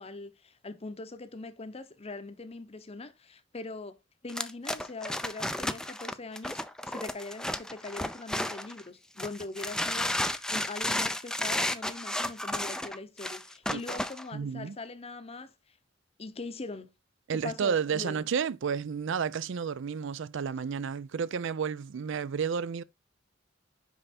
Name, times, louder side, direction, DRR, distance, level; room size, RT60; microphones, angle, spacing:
voice 1, 0.0-4.0 4.2-15.5 16.2-16.9 17.3-18.2, left 3 dB, 30° left, 0.7 m, -42 dB
sound 1, 4.3-8.8 9.2-14.2, left 1 dB, 5° left, 0.4 m, -32 dB
voice 2, 14.3-14.8 17.3-22.8, right 6 dB, 65° right, 0.4 m, -31 dB
5.5 x 5.5 x 4.1 m
head